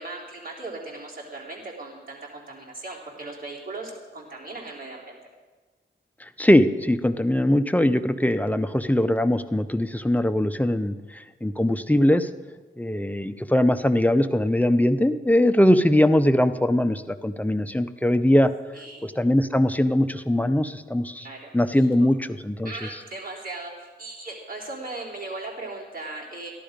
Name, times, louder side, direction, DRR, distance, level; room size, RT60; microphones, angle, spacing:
voice 1, 0.0-5.2 18.7-19.1 21.2-21.9 22.6-26.5, right 2 dB, 45° right, -3 dB, 3.7 m, -38 dB
voice 2, 6.4-12.3 12.8-18.5 19.0-21.3 21.5-22.7, left 1 dB, 10° left, 10 dB, 0.6 m, -21 dB
14.0 x 11.5 x 5.1 m, 1.3 s
wide cardioid pair, 65°, 20 cm